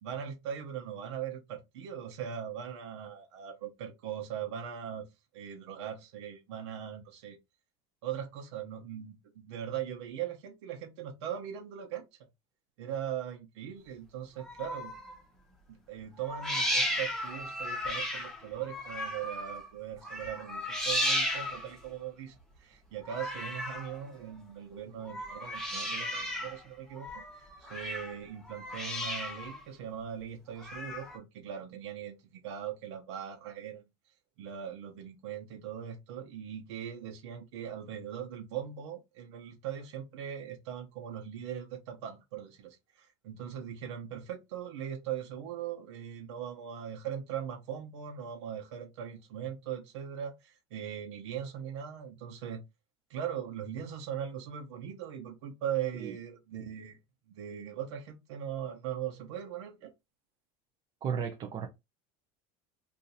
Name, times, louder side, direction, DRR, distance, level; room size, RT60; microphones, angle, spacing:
voice 1, 0.0-7.4 8.0-12.1 12.8-14.9 15.7-33.8 34.4-52.6 53.1-57.0 57.3-59.9, right 9 dB, 85° right, 0.9 m, -40 dB
sound 1, 14.4-15.2 16.2-19.7 20.0-21.8 23.0-24.0 25.0-26.6 26.9-28.2 28.5-29.6 30.6-31.2, equal, 5° left, 1.0 m, -34 dB
voice 2, 61.0-61.7, right 7 dB, 35° right, 0.6 m, -34 dB
2.7 x 2.6 x 4.0 m
supercardioid pair, 135°, 14 cm